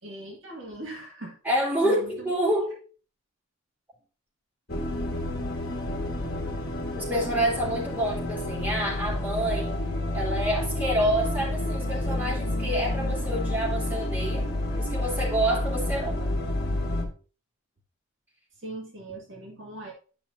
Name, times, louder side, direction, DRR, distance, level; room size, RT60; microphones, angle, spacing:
voice 1, 0.0-1.4 1.8-2.3 18.6-19.9, right 1 dB, 65° right, -1 dB, 2.1 m, -40 dB
voice 2, 1.4-2.8 6.9-9.8 10.1-14.4 14.8-16.3, right 1 dB, 10° right, -5 dB, 3.4 m, -28 dB
sound 1, 4.7-17.1, left 1 dB, 50° left, 1.5 m, -29 dB
11.0 x 5.5 x 2.7 m, 0.38 s
head